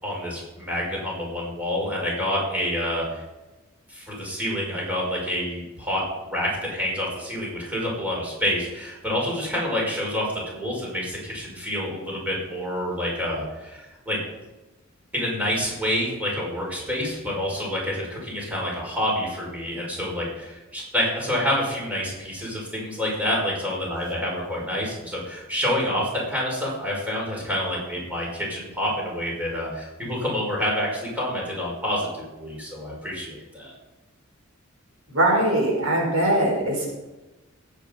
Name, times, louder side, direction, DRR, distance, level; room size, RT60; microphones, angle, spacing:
voice 1, 0.0-3.2 3.9-6.0 6.3-14.2 15.1-33.7, left 1 dB, 5° right, -3 dB, 5.4 m, -28 dB
voice 2, 35.1-36.9, right 1 dB, 80° right, -1 dB, 5.4 m, -21 dB
19.0 x 9.2 x 5.4 m, 1.1 s
head